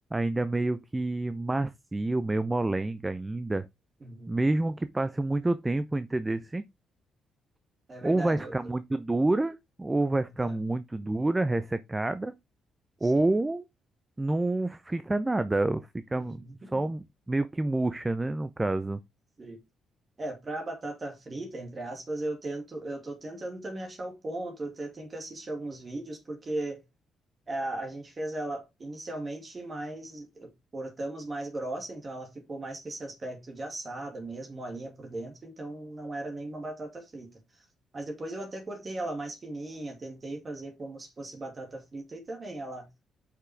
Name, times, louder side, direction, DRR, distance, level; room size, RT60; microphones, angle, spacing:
voice 1, 0.1-3.7 4.3-6.6 8.0-12.3 13.0-13.6 14.2-16.4 16.7-19.0, right 2 dB, 15° right, 0.6 m, -28 dB
voice 2, 4.0-4.5 7.9-8.5 10.4-10.6 13.0-13.1 16.2-16.8 19.4-19.6 20.2-26.8 27.5-37.3 37.9-42.9, right 2 dB, 35° right, 2.2 m, -37 dB
6.0 x 5.7 x 3.4 m
cardioid pair, 90°, 0 cm